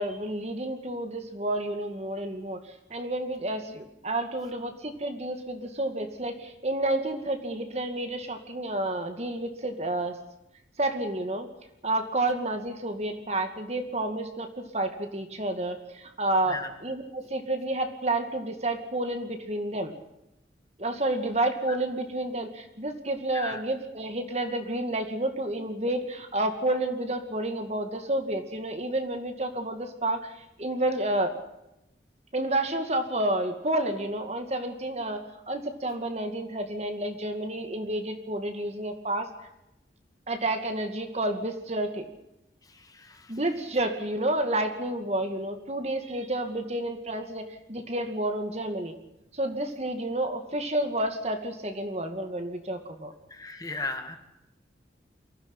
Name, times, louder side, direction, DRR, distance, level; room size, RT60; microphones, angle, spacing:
voice 1, 0.0-10.2 10.8-11.5 11.8-19.9 20.8-31.3 32.3-39.3 40.3-42.1 43.3-49.0 49.3-53.1, right 1 dB, 35° right, 6 dB, 2.4 m, -30 dB
voice 2, 42.7-43.3 53.3-54.2, left 3 dB, 20° left, 6 dB, 2.1 m, -36 dB
23.5 x 15.5 x 9.9 m, 0.88 s
head